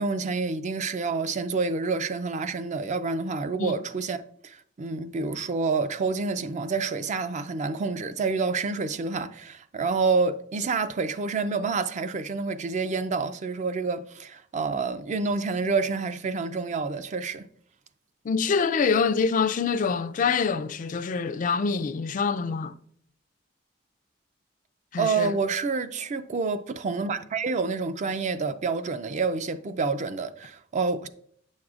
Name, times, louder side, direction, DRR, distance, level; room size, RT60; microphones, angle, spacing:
voice 1, 0.0-4.2 4.4-17.4 25.0-31.1, right 4 dB, 40° right, 0.4 m, -28 dB
voice 2, 18.2-22.7 24.9-25.4, left 5 dB, 45° left, 0.3 m, -25 dB
9.4 x 6.3 x 2.4 m
head